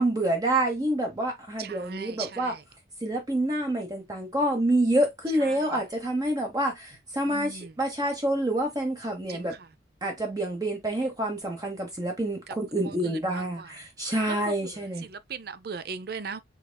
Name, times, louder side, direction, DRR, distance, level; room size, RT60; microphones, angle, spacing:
voice 1, 0.0-2.5 3.0-9.5 10.0-15.0, right 1 dB, 20° right, 0.9 m, -27 dB
voice 2, 1.6-2.6 5.3-5.8 7.3-7.8 9.3-9.7 12.5-12.6 12.8-13.7 14.3-16.4, right 5 dB, 55° right, 0.5 m, -39 dB
5.6 x 3.6 x 2.2 m
head